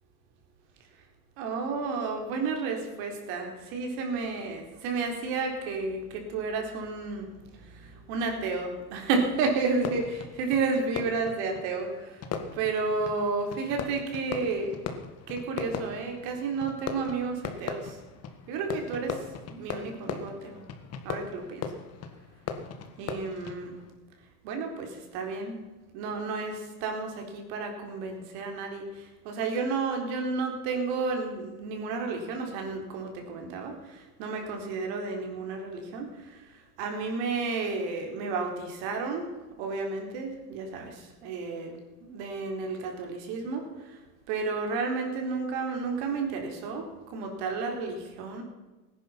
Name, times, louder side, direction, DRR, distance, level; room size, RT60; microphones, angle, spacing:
voice 1, 1.4-12.3 12.5-14.9 15.3-18.0 18.5-20.6 21.0-21.7 23.0-23.8 24.4-25.6 25.9-39.3 39.6-44.0 44.3-48.4, right 4 dB, 55° right, 3 dB, 4.3 m, -32 dB
Fireworks, 9.7-23.9, left 6 dB, 35° left, 1.8 m, -39 dB
17.5 x 10.5 x 5.8 m, 1.2 s
hypercardioid pair, 115°, 46 cm